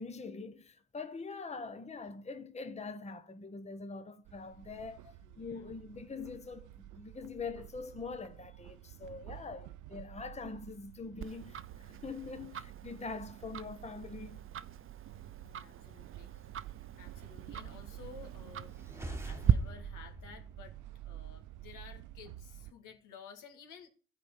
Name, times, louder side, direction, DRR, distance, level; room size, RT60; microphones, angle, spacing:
voice 1, 0.0-5.1 5.4-14.4, left 4 dB, 20° left, 1.0 m, -43 dB
sound 1, 4.2-22.7, right 14 dB, 80° right, 0.5 m, -50 dB
voice 2, 5.0-5.7 9.3-9.6 15.4-16.3 17.0-18.7 19.0-20.8 21.0-23.9, left 7 dB, 85° left, 2.3 m, -54 dB
Tick-tock, 11.2-19.5, right 9 dB, 45° right, 0.7 m, -38 dB
sound 2, 18.7-21.4, right 2 dB, 10° right, 1.4 m, -45 dB
13.5 x 5.1 x 8.9 m
cardioid pair, 90°, 30 cm